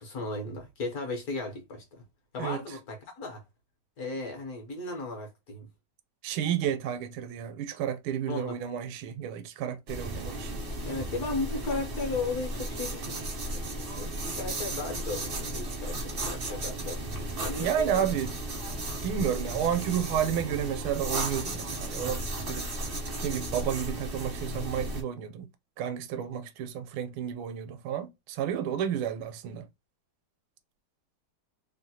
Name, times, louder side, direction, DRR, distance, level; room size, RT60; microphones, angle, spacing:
voice 1, 0.0-2.0 2.3-3.4 4.0-5.7 8.3-8.6 10.8-13.6 13.9-17.0 17.4-18.1, left 3 dB, 60° left, 1.1 m, -36 dB
voice 2, 6.2-10.6 17.6-18.3 19.0-22.7 23.2-25.5 25.8-29.7, right 9 dB, 85° right, 1.4 m, -31 dB
sound 1, 9.9-25.0, right 1 dB, 50° right, 0.6 m, -35 dB
3.4 x 2.1 x 2.7 m
omnidirectional pair, 2.3 m